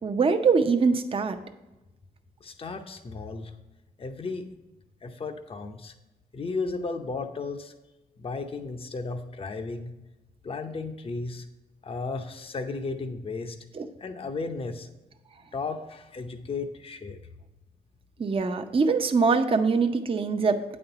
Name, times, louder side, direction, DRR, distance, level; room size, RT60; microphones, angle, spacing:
voice 1, 0.0-1.4 13.7-13.9 18.2-20.6, right 4 dB, 35° right, 6 dB, 0.6 m, -23 dB
voice 2, 2.4-3.5 4.0-4.4 5.0-5.9 6.3-7.7 8.2-9.9 10.4-11.5 11.8-13.6 14.0-14.9 15.5-17.2, left 4 dB, 35° left, 6 dB, 0.7 m, -34 dB
8.7 x 4.3 x 6.7 m, 1.0 s
cardioid pair, 80°, 16 cm